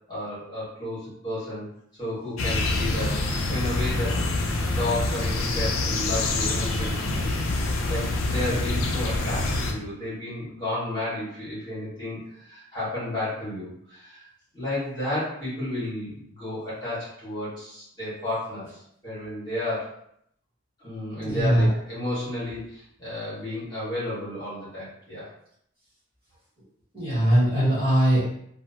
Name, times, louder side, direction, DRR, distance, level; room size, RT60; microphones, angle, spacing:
voice 1, 0.1-1.6 2.0-3.2 3.5-4.2 4.6-7.3 7.8-14.2 14.5-18.7 19.0-19.9 20.8-25.3, left 1 dB, 20° left, -10 dB, 1.5 m, -32 dB
sound 1, 2.4-9.7, left 2 dB, 80° left, 0.4 m, -26 dB
voice 2, 21.2-21.7 26.9-28.2, right 1 dB, 25° right, -10 dB, 1.3 m, -21 dB
3.0 x 2.1 x 2.7 m, 0.71 s
head